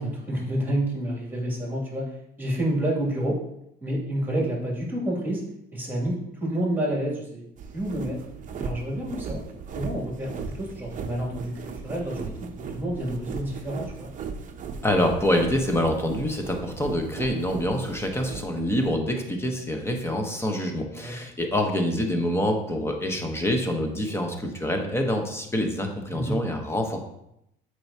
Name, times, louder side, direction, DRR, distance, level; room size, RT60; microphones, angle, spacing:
voice 1, 0.0-2.1 2.4-3.4 3.8-5.4 5.7-7.4 7.7-8.2 8.6-14.1 20.9-21.1 26.1-26.4, right 1 dB, 10° right, -4 dB, 2.6 m, -29 dB
sound 1, 7.6-18.9, right 5 dB, 45° right, 0.7 m, -37 dB
voice 2, 14.8-27.0, left 1 dB, 15° left, 3 dB, 1.1 m, -26 dB
7.6 x 4.7 x 2.9 m, 0.80 s
cardioid pair, 100°, 19 cm